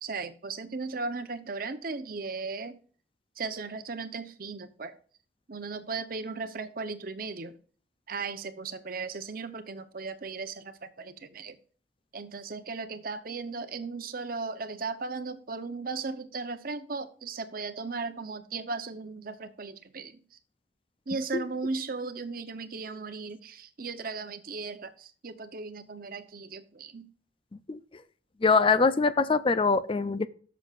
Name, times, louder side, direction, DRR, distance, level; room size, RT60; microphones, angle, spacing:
voice 1, 0.0-2.8 3.4-5.0 5.5-7.5 8.1-11.6 12.1-20.2 21.1-27.1, right 4 dB, 55° right, 11 dB, 0.8 m, -36 dB
voice 2, 28.4-30.3, left 4 dB, 30° left, 14 dB, 0.5 m, -23 dB
13.5 x 7.1 x 2.5 m, 0.42 s
head